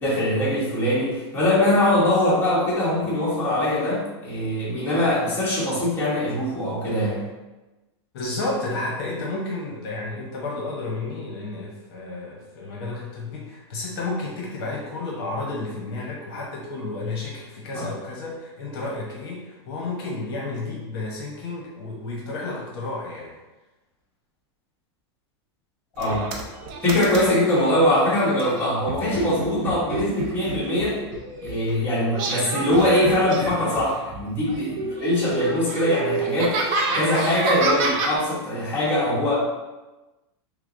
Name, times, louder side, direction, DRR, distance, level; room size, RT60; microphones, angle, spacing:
voice 1, 0.0-7.2 17.7-17.9 26.0-26.3 26.8-31.0 31.4-39.4, left 1 dB, 15° left, -8 dB, 1.1 m, -22 dB
voice 2, 8.1-23.3 31.6-31.9, left 2 dB, 60° left, -2 dB, 0.9 m, -31 dB
sound 1, 26.0-27.7 28.4-31.7 32.1-34.2 34.5-38.1, right 3 dB, 40° right, 0.5 m, -28 dB
5.7 x 2.0 x 2.5 m, 1.1 s
supercardioid pair, 160°, 14 cm